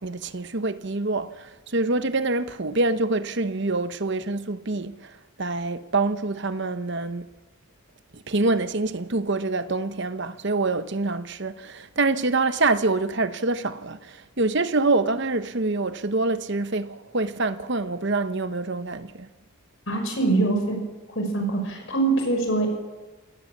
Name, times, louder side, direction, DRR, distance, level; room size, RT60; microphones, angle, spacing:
voice 1, 0.0-5.1 5.4-7.3 8.1-19.3, right 3 dB, 50° right, 1.0 m, -26 dB
voice 2, 19.9-20.8 21.2-22.7, right 3 dB, 60° left, 5.6 m, -23 dB
27.0 x 18.0 x 7.4 m
head